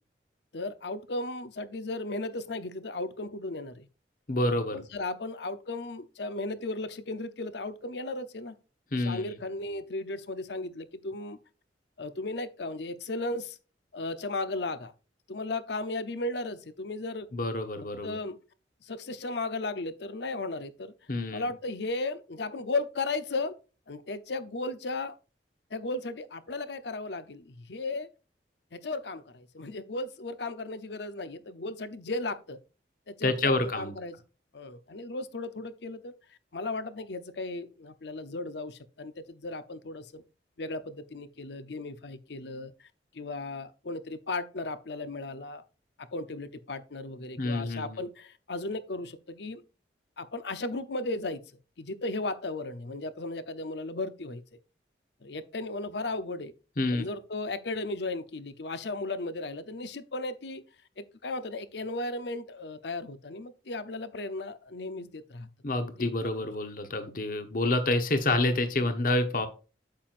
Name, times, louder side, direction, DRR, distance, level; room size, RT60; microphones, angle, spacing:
voice 1, 0.5-3.9 4.7-8.6 8.9-11.4 12.0-13.6 13.9-14.9 15.3-17.3 18.0-18.4 18.8-20.9 21.3-23.5 23.9-25.1 25.7-28.1 28.7-32.6 33.1-34.2 34.5-36.1 36.5-40.2 40.6-42.7 43.1-45.6 46.1-49.6 50.2-51.4 51.8-54.4 55.2-56.5 56.9-60.6 61.0-65.5 66.0-66.5 67.0-67.1, left 2 dB, 70° left, 0.7 m, -35 dB
voice 2, 4.3-4.8 8.9-9.4 17.3-18.2 21.1-21.5 33.2-33.9 47.4-48.0 56.8-57.1 65.6-69.5, left 2 dB, 50° left, 1.1 m, -28 dB
8.6 x 7.6 x 2.6 m
head